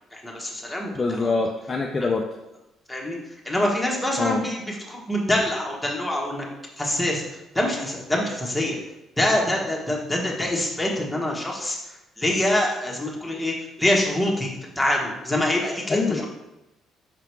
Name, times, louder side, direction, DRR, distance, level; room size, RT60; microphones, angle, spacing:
voice 1, 0.1-1.4 2.9-3.2 3.4-6.5 6.8-8.8 9.2-16.3, left 1 dB, 5° left, -2 dB, 1.3 m, -25 dB
voice 2, 0.9-2.2 4.2-4.4 15.9-16.3, left 3 dB, 25° left, 0 dB, 0.5 m, -24 dB
5.7 x 3.8 x 4.6 m, 0.93 s
cardioid pair, 125°, 0 cm